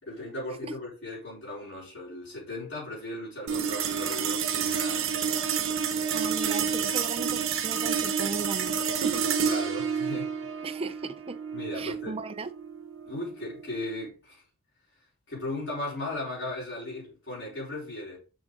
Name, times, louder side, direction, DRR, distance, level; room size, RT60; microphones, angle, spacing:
voice 1, 0.0-5.1 9.4-10.5 11.5-12.2 13.0-14.4 15.3-18.2, left 2 dB, 55° left, 4.6 m, -37 dB
sound 1, 3.5-14.1, right 7 dB, 70° right, 1.0 m, -29 dB
voice 2, 6.1-9.3 10.6-11.4 11.7-12.5, right 3 dB, 25° right, 0.4 m, -37 dB
7.1 x 6.2 x 3.8 m
head